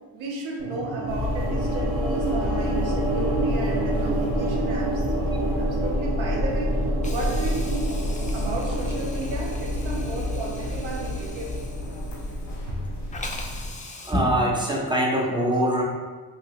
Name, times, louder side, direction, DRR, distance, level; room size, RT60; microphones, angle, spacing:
voice 1, 0.1-8.0 8.3-11.6 12.7-12.8, right 2 dB, 75° right, 0 dB, 0.8 m, -34 dB
sound 1, 0.6-12.8, right 2 dB, 40° right, 1.1 m, -30 dB
sound 2, 1.1-13.7, left 1 dB, 35° left, 0.8 m, -29 dB
Hiss, 7.0-12.8 13.1-14.1, left 3 dB, 20° left, 0.4 m, -42 dB
voice 2, 14.0-15.8, right 1 dB, 10° right, -2 dB, 0.8 m, -23 dB
2.8 x 2.7 x 3.0 m, 1.4 s
supercardioid pair, 50°, 47 cm